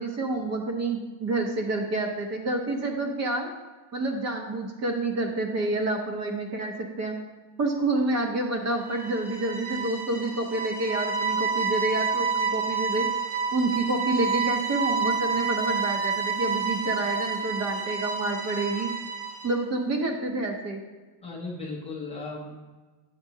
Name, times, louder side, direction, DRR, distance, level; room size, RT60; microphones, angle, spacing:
voice 1, 0.0-3.5 3.9-7.2 7.6-13.1 13.5-18.9 19.4-20.8, right 2 dB, 30° right, 3 dB, 0.8 m, -28 dB
sound 1, 8.8-19.6, right 5 dB, 50° right, 1.1 m, -29 dB
voice 2, 21.2-22.6, left 3 dB, 15° left, -5 dB, 0.5 m, -36 dB
9.2 x 6.8 x 2.8 m, 1.3 s
cardioid pair, 175°, 49 cm